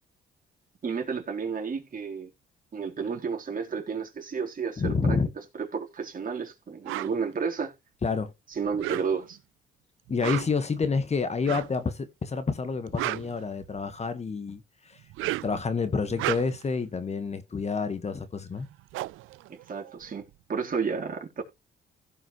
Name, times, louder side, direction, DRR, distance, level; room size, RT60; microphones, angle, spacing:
voice 1, 0.8-2.3 2.7-5.2 5.6-7.7 8.5-9.4 19.5-21.4, right 5 dB, 45° right, 3.8 m, -32 dB
voice 2, 4.8-5.3 8.0-8.3 10.1-15.0 15.4-18.7, left 4 dB, 35° left, 1.5 m, -28 dB
sound 1, 6.9-7.1 8.7-9.4 10.1-10.7 11.4-11.8 12.7-14.0 15.0-15.6 16.0-16.7 18.3-18.4 18.6-20.3, right 18 dB, 90° right, 0.5 m, -34 dB
16.0 x 5.6 x 3.1 m
cardioid pair, 90°, 20 cm